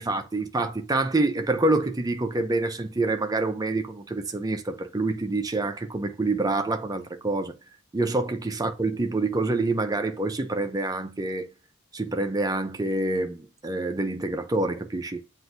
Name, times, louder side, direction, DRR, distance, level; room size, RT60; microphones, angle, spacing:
voice 1, 0.0-7.6 7.9-11.5 11.9-15.2, right 2 dB, 15° right, 0.5 m, -27 dB
7.8 x 2.6 x 2.6 m
head